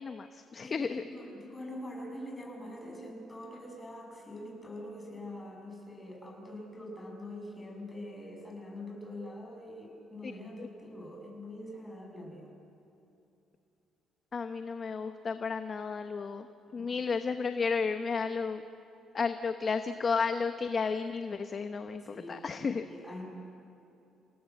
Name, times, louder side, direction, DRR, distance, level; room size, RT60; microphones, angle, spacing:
voice 1, 0.0-1.0 14.3-16.5 16.7-18.6 19.1-22.8, left 5 dB, 40° left, 8 dB, 1.0 m, -32 dB
voice 2, 0.6-12.5 16.7-17.1 22.0-22.4 22.7-23.3, left 1 dB, 20° left, 1 dB, 7.5 m, -44 dB
28.0 x 18.5 x 7.7 m, 2.8 s
supercardioid pair, 80°, 0 cm